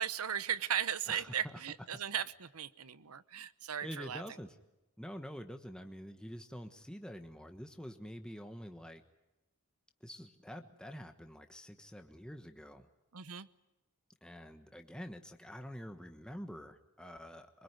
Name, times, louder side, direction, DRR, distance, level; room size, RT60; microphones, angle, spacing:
voice 1, 0.0-4.2 13.1-13.5, right 9 dB, 85° right, 15 dB, 1.0 m, -37 dB
voice 2, 1.1-1.5 3.8-4.6 5.0-9.0 10.0-12.9 14.2-17.6, equal, 5° left, 6 dB, 1.3 m, -47 dB
24.5 x 23.0 x 9.7 m, 0.97 s
head